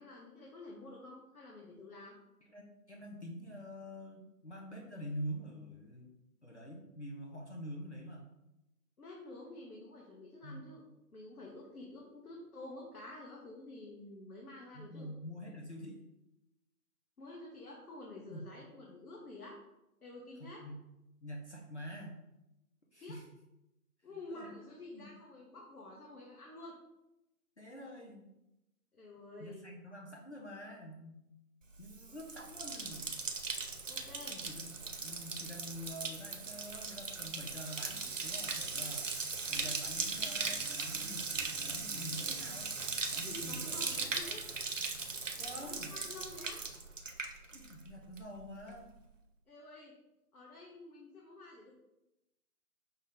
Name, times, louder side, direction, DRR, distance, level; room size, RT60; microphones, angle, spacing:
voice 1, 0.0-2.2 9.0-10.8 11.1-15.1 17.2-19.6 20.0-20.6 23.0-23.2 24.0-26.8 28.9-29.7 33.9-34.4 43.2-44.4 45.6-46.6 49.5-49.9 50.3-51.7, left 2 dB, 70° left, -3 dB, 1.0 m, -49 dB
voice 2, 2.5-6.1 6.4-8.3 10.4-10.7 14.7-16.0 18.3-18.5 20.4-20.8 21.2-22.2 22.9-23.2 24.3-24.5 24.9-25.1 27.6-28.2 29.4-31.2 31.8-33.2 34.3-39.1 39.5-41.3 41.6-42.7 43.1-43.8 45.4-46.0 47.5-48.9, equal, 50° left, -1 dB, 0.6 m, -46 dB
Bathtub (filling or washing), 31.8-47.9 48.2-48.7, right 4 dB, 55° right, 0.5 m, -39 dB
Marimba xylophone, 39.5-44.6, right 1 dB, 30° left, 1.4 m, -56 dB
5.3 x 2.2 x 3.5 m, 0.92 s
figure-of-eight pair, 175°, 46 cm